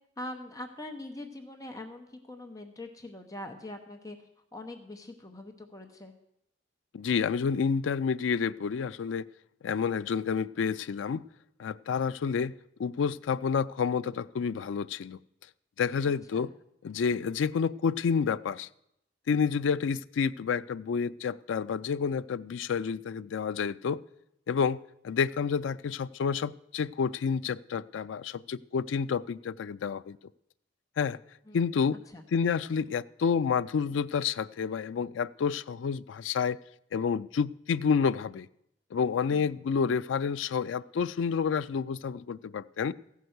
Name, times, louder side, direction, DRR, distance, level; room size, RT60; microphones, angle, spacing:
voice 1, 0.2-4.2 4.5-6.1 16.0-16.5 19.3-19.5 31.5-31.7 32.1-32.2 39.3-39.6, left 1 dB, 20° left, 4 dB, 0.8 m, -43 dB
voice 2, 6.9-9.3 9.6-11.2 11.6-12.5 12.8-15.2 15.8-16.5 16.8-18.7 19.3-24.0 24.5-24.8 25.0-30.2 31.0-31.2 31.5-32.0 32.3-36.6 36.9-38.5 38.9-42.9, left 6 dB, 85° left, 15 dB, 0.4 m, -29 dB
14.5 x 5.6 x 7.9 m, 0.78 s
head